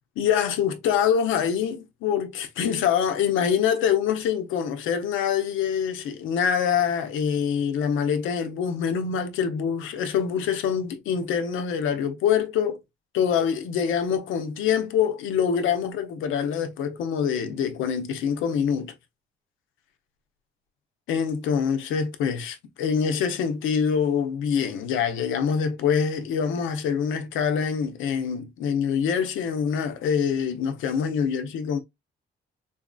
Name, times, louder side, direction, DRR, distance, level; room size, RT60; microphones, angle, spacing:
voice 1, 0.2-12.8 13.1-18.9 21.1-31.8, left 7 dB, 90° left, 0.7 m, -25 dB
4.0 x 2.6 x 2.3 m
cardioid pair, 90°, 20 cm